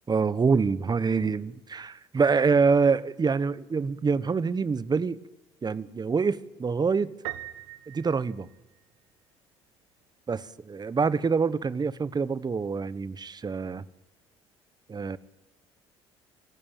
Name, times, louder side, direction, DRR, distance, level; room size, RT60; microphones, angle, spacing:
voice 1, 0.1-5.2 5.6-7.1 7.9-8.5 10.3-13.8 14.9-15.2, right 5 dB, 30° right, 1.2 m, -26 dB
Piano, 7.2-9.1, right 16 dB, 80° right, 1.2 m, -40 dB
27.5 x 15.5 x 9.0 m
hypercardioid pair, 55°, 14 cm